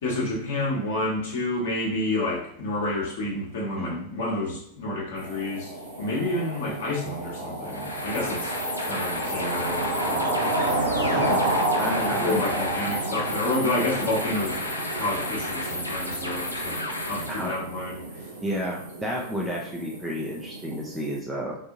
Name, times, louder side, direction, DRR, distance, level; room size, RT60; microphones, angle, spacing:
voice 1, 0.0-5.7 6.0-8.6 8.8-10.3 11.9-14.6 15.0-18.0, left 1 dB, 55° left, -4 dB, 1.1 m, -29 dB
voice 2, 3.8-4.1 11.2-11.5 11.8-12.4 17.3-17.6 18.4-21.6, equal, 5° right, -3 dB, 0.6 m, -31 dB
sound 1, 5.2-21.2, right 1 dB, 70° right, 0.8 m, -30 dB
sound 2, 7.6-17.5, left 1 dB, 85° left, 0.5 m, -33 dB
4.0 x 2.7 x 2.6 m, 0.70 s
figure-of-eight pair, 90°, 0 cm